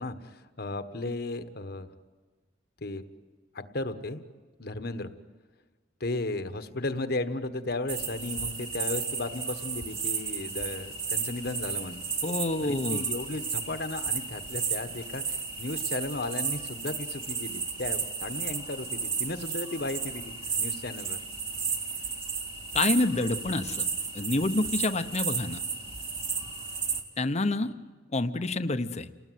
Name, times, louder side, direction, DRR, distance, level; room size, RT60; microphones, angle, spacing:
voice 1, 0.0-1.9 2.8-3.0 3.5-4.2 4.6-5.1 6.0-12.0 12.6-21.2, left 2 dB, 55° left, 10 dB, 1.4 m, -35 dB
sound 1, 7.9-27.0, right 5 dB, 30° right, 2.6 m, -33 dB
voice 2, 12.2-13.0 22.7-23.8 24.1-25.6 27.2-27.7 28.1-29.1, left 2 dB, 35° left, 10 dB, 0.9 m, -27 dB
29.5 x 19.5 x 9.4 m, 1.4 s
head